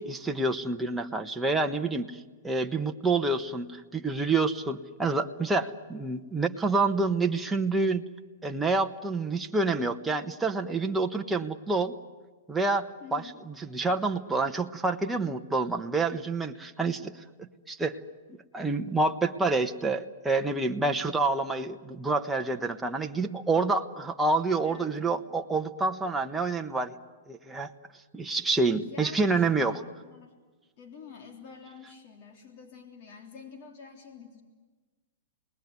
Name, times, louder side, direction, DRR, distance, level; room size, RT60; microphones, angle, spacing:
voice 1, 0.0-8.0 8.4-11.9 12.5-18.0 18.5-26.9 27.3-27.7 28.1-29.8, right 3 dB, 10° right, 4 dB, 1.2 m, -28 dB
voice 2, 13.0-13.4 24.6-25.3 28.7-30.3 30.8-34.4, left 6 dB, 50° left, 2 dB, 3.5 m, -48 dB
28.5 x 20.0 x 9.6 m, 1.4 s
hypercardioid pair, 130°, 0 cm